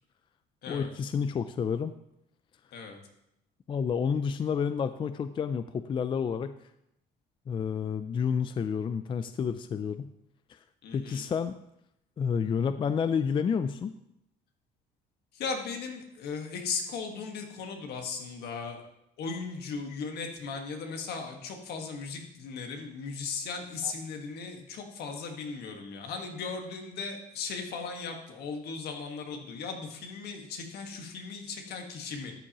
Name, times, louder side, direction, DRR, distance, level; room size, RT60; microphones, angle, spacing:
voice 1, 0.7-1.9 3.7-6.5 7.5-10.1 10.5-10.6 10.9-11.6 12.2-13.9 23.8-23.9, left 6 dB, 30° left, 11 dB, 0.4 m, -30 dB
voice 2, 10.8-11.3 15.3-18.9 19.2-32.3, left 5 dB, 70° left, 3 dB, 1.6 m, -37 dB
13.0 x 7.3 x 3.0 m, 0.81 s
cardioid pair, 110°, 17 cm